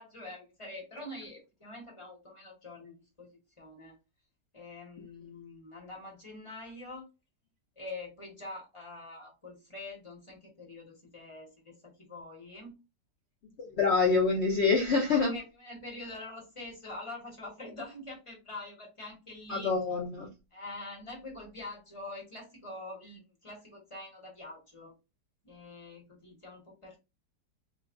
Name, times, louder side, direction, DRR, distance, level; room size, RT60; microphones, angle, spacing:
voice 1, 0.0-3.3 3.6-4.0 4.5-7.1 7.8-12.8 14.9-19.7 20.5-24.9 25.4-27.0, left 2 dB, 20° left, 1.1 m, -45 dB
voice 2, 13.6-15.3 19.5-20.3, left 4 dB, 65° left, 0.6 m, -26 dB
3.1 x 2.3 x 3.6 m
omnidirectional pair, 1.9 m